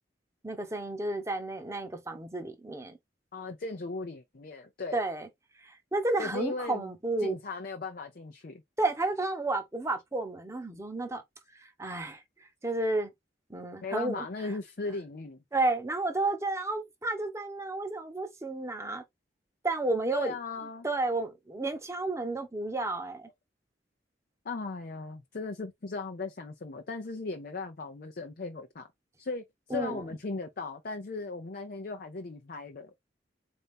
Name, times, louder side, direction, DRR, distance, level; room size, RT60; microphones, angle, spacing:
voice 1, 0.4-3.0 4.9-5.3 5.6-7.4 8.8-11.2 11.6-12.2 12.6-13.1 13.5-14.3 15.5-19.0 19.6-20.3 20.8-23.3 29.7-30.0, right 2 dB, 15° right, 0.8 m, -31 dB
voice 2, 3.3-5.0 6.2-6.9 7.2-8.6 13.8-15.4 20.1-20.9 24.4-28.9 29.2-32.9, left 3 dB, 55° left, 0.6 m, -37 dB
4.1 x 2.6 x 3.5 m
head